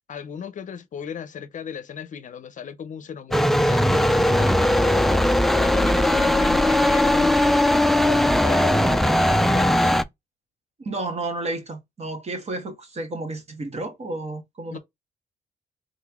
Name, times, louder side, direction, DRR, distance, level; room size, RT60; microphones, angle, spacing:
voice 1, 0.1-10.1 14.7-14.8, left 7 dB, 50° left, 0.7 m, -36 dB
sound 1, 3.3-10.0, left 1 dB, ahead, 0.4 m, -19 dB
voice 2, 10.8-14.8, right 2 dB, 40° right, 1.7 m, -31 dB
3.8 x 3.2 x 3.6 m
cardioid pair, 90°, 16 cm